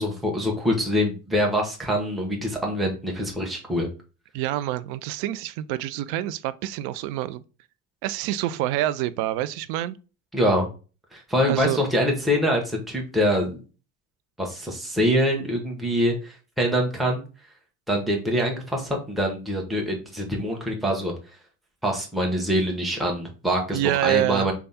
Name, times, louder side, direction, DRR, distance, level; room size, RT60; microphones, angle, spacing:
voice 1, 0.0-3.9 10.3-10.7 11.1-13.6 14.4-17.2 17.9-21.1 21.8-24.5, equal, ahead, 1.2 m, -24 dB
voice 2, 4.3-7.4 8.0-10.0 11.5-11.8 23.7-24.5, right 14 dB, 65° right, 0.5 m, -27 dB
3.4 x 2.3 x 4.1 m
hypercardioid pair, 70°, 44 cm